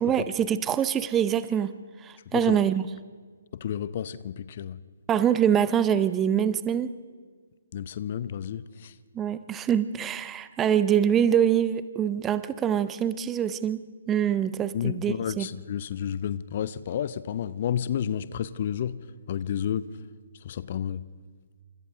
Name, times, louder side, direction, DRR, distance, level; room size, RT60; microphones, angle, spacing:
voice 1, 0.0-1.7 2.0-2.9 5.1-6.9 9.1-15.5, right 9 dB, 15° right, 14 dB, 0.6 m, -24 dB
voice 2, 3.5-4.8 7.7-8.9 14.7-19.0 19.3-19.9 20.4-21.0, left 9 dB, 40° left, 16 dB, 0.7 m, -31 dB
29.0 x 26.5 x 3.6 m, 1.5 s
figure-of-eight pair, 135°, 0 cm